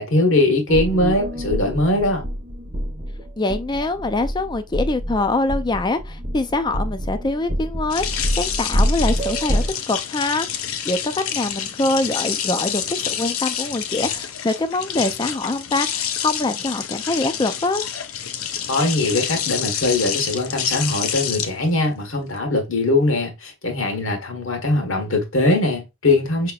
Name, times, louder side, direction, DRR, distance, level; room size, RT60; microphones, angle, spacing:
voice 1, 0.0-2.2 18.7-26.5, left 2 dB, 70° left, 1.2 m, -21 dB
sound 1, 0.7-9.7, equal, 25° right, 0.8 m, -26 dB
voice 2, 3.4-17.8, left 2 dB, 20° left, 0.4 m, -24 dB
sound 2, 7.9-22.4, left 9 dB, 85° left, 0.6 m, -28 dB
5.0 x 2.9 x 2.3 m
head